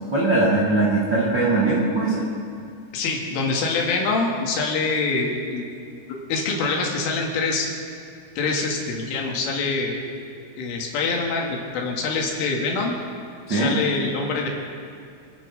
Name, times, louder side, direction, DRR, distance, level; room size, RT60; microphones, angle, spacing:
voice 1, 0.1-2.2 13.5-13.8, right 2 dB, 50° right, -6 dB, 1.3 m, -20 dB
voice 2, 2.9-7.7 8.4-10.0 10.6-12.9 13.5-14.5, left 4 dB, 85° left, 0 dB, 4.5 m, -25 dB
26.5 x 9.8 x 5.3 m, 2.4 s
omnidirectional pair, 5.6 m